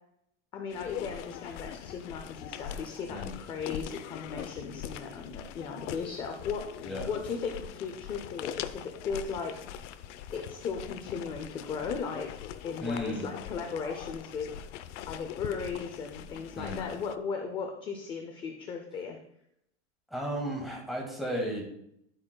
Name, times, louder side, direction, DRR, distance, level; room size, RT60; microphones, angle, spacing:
voice 1, 0.5-6.6 7.1-9.5 10.3-14.5 15.1-19.2, left 5 dB, 15° left, 3 dB, 0.3 m, -36 dB
sound 1, 0.7-17.2, left 10 dB, 70° left, 0.7 m, -42 dB
voice 2, 12.8-13.3 16.5-16.9 20.1-21.7, equal, ahead, -2 dB, 1.8 m, -34 dB
11.0 x 8.6 x 2.2 m, 0.75 s
supercardioid pair, 165°, 37 cm